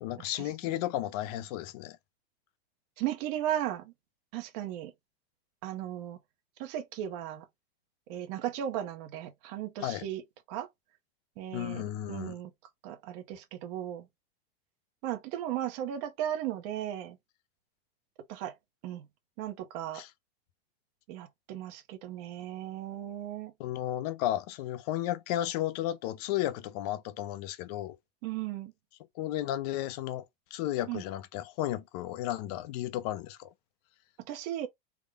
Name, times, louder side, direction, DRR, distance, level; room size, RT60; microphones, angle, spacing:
voice 1, 0.0-2.0 9.8-10.1 11.5-12.4 19.9-20.1 23.6-28.0 29.2-33.5, left 13 dB, 40° left, 0.5 m, -33 dB
voice 2, 3.0-3.9 4.3-4.9 5.6-6.2 6.6-7.4 8.1-10.2 10.5-10.7 11.4-12.5 12.8-14.1 15.0-17.2 18.3-18.6 18.8-19.1 19.4-20.0 21.1-23.5 28.2-28.7 30.9-31.0 34.3-34.7, right 11 dB, 40° right, 0.8 m, -36 dB
3.6 x 2.1 x 3.4 m
supercardioid pair, 155°, 31 cm